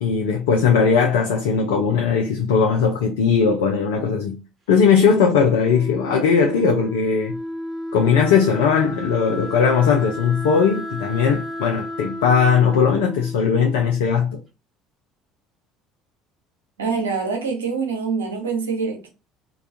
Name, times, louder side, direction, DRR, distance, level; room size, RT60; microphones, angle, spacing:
voice 1, 0.0-4.4 4.7-7.4 7.9-14.4, left 6 dB, 70° left, 0.4 m, -18 dB
Wind instrument woodwind instrument, 5.5-14.2, left 1 dB, 25° right, 1.0 m, -32 dB
voice 2, 16.8-19.1, right 5 dB, 75° right, 0.6 m, -25 dB
2.3 x 2.2 x 2.7 m
figure-of-eight pair, 60°, 0 cm